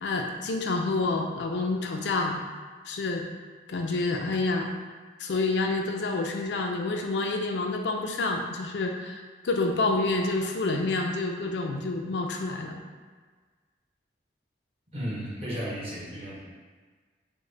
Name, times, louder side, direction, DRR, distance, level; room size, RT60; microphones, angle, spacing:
voice 1, 0.0-2.4 2.9-3.2 3.7-4.7 5.2-12.8, left 3 dB, 70° left, 2 dB, 0.4 m, -28 dB
voice 2, 14.9-16.4, equal, 35° right, -7 dB, 0.9 m, -34 dB
3.6 x 2.1 x 3.2 m, 1.5 s
head